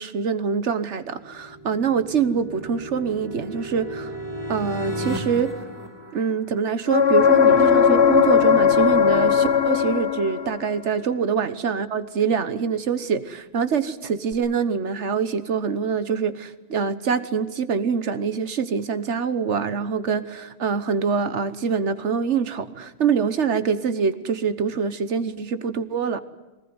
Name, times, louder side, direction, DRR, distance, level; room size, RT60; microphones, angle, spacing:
voice 1, 0.0-4.2 4.5-5.5 6.1-26.2, right 6 dB, 85° right, 12 dB, 1.5 m, -25 dB
sound 1, 1.0-6.9, equal, 25° left, 2.6 m, -34 dB
sound 2, 6.9-10.6 14.3-14.4, left 7 dB, 65° left, 1.4 m, -18 dB
21.5 x 19.5 x 9.6 m, 1.2 s
omnidirectional pair, 1.2 m